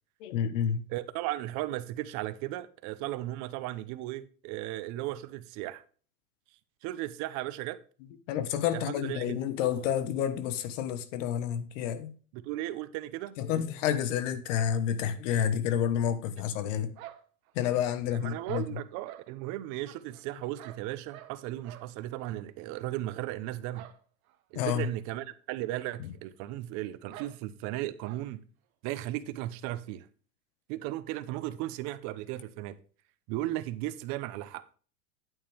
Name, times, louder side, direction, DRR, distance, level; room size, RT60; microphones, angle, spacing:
voice 1, 0.2-0.8 8.3-12.1 13.4-16.9 17.5-18.8 24.5-24.9 26.0-26.1, left 9 dB, 60° left, 1.4 m, -29 dB
voice 2, 0.9-5.8 6.8-7.8 8.7-9.4 12.3-13.3 18.1-23.9 24.5-28.4 28.8-30.1 30.7-32.7 33.3-34.6, right 15 dB, 40° right, 0.9 m, -36 dB
sound 1, 17.0-18.0 18.4-19.3 19.8-21.4 21.6-21.9 22.2-22.4 22.7-22.8 23.7-24.0 24.3-24.4 24.8-24.9 25.7-25.8 26.1-26.2 27.1-27.4 28.0-28.2, right 13 dB, 75° right, 1.2 m, -49 dB
9.3 x 8.5 x 3.4 m
supercardioid pair, 140°, 42 cm